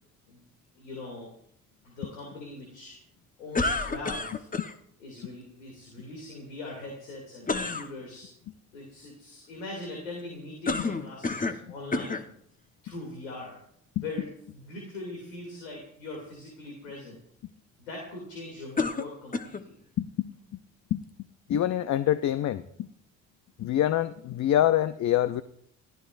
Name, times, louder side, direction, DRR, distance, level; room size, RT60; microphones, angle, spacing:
voice 1, 0.7-1.3 1.8-3.0 3.4-4.5 5.0-8.3 8.7-12.2 12.8-13.6 14.0-17.2 17.8-19.7, left 2 dB, 90° left, -1 dB, 2.9 m, -41 dB
sound 1, 3.5-4.7 7.5-7.9 10.7-11.6 11.9-12.3 13.1-13.2 18.8-19.7, left 3 dB, 20° left, 1.1 m, -29 dB
voice 2, 20.0-20.3 20.9-21.0 21.5-22.6 23.6-25.4, left 12 dB, 45° left, 14 dB, 0.6 m, -25 dB
29.0 x 15.0 x 2.6 m, 0.69 s
hypercardioid pair, 50°, 39 cm